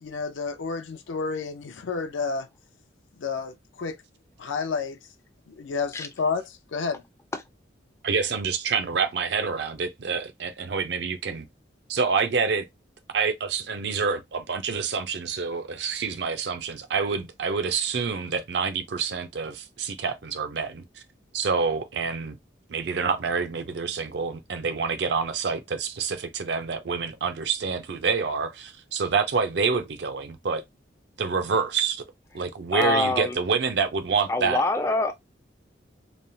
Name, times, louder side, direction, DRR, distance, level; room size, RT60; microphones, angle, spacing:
voice 1, 0.0-2.5 3.2-4.0 4.4-5.0 5.5-7.0, left 4 dB, 85° left, 0.5 m, -30 dB
voice 2, 8.0-11.5 11.9-12.7 13.1-20.8 21.3-22.4 22.7-30.6 31.2-32.0 32.3-34.6, right 5 dB, 65° right, 0.5 m, -27 dB
voice 3, 32.7-33.4 34.3-35.1, left 2 dB, 15° left, 0.3 m, -25 dB
3.1 x 2.0 x 2.6 m
head